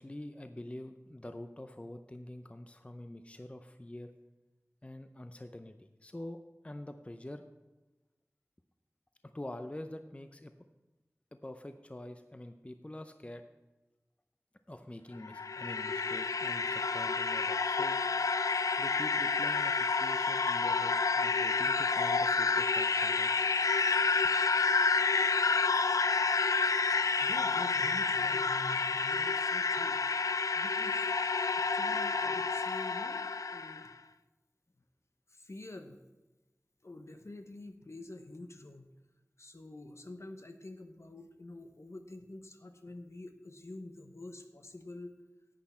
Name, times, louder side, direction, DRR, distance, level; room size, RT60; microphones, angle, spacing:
voice 1, 0.0-4.1 4.8-6.4 6.6-7.4 9.3-10.5 11.4-13.4 14.7-18.0 18.8-23.3, left 1 dB, 20° left, 8 dB, 0.6 m, -45 dB
sound 1, 15.2-33.8, left 4 dB, 90° left, 0.3 m, -29 dB
voice 2, 27.0-30.0 30.5-31.1 31.5-33.2 33.5-33.9 35.3-36.0 36.8-38.9 39.4-45.2, left 2 dB, 60° left, 7 dB, 1.0 m, -47 dB
11.5 x 8.5 x 4.3 m, 1.1 s
wide cardioid pair, 55°, 6 cm